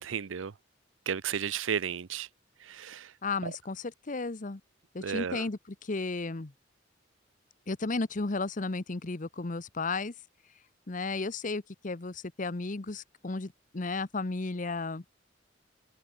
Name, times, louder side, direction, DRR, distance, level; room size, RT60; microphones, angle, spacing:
voice 1, 0.0-0.5 1.1-2.3 2.6-3.1 3.4-3.5 5.0-5.5, right 7 dB, 90° right, 0.6 m, -33 dB
voice 2, 3.2-4.6 4.9-6.5 7.7-10.1 10.9-15.0, left 3 dB, 40° left, 0.9 m, -34 dB
head